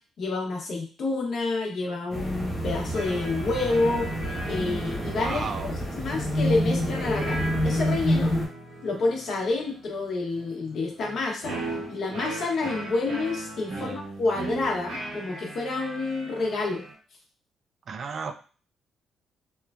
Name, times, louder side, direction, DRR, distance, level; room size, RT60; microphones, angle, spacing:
voice 1, 0.2-4.1 4.4-5.5 6.0-8.4 8.8-11.6 11.9-16.8, left 3 dB, 60° left, 0 dB, 0.8 m, -28 dB
sound 1, 2.1-8.5, equal, 20° left, 1.2 m, -28 dB
sound 2, 2.9-16.9, right 2 dB, 90° right, 1.3 m, -38 dB
voice 2, 5.1-5.7 13.7-14.0 17.9-18.3, right 5 dB, 50° right, 7 dB, 0.3 m, -34 dB
3.0 x 2.2 x 2.4 m, 0.39 s
cardioid pair, 90°, 0 cm